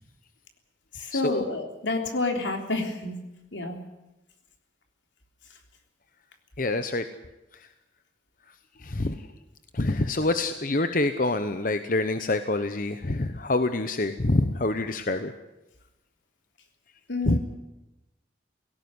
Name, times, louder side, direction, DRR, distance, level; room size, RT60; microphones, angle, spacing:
voice 1, 0.9-3.2 3.5-3.8 17.1-17.4, left 2 dB, 80° left, 4 dB, 3.5 m, -29 dB
voice 2, 6.6-7.0 8.8-9.2 9.7-15.3 17.3-17.4, left 2 dB, 45° left, 9 dB, 0.9 m, -26 dB
18.5 x 17.0 x 9.7 m, 0.99 s
head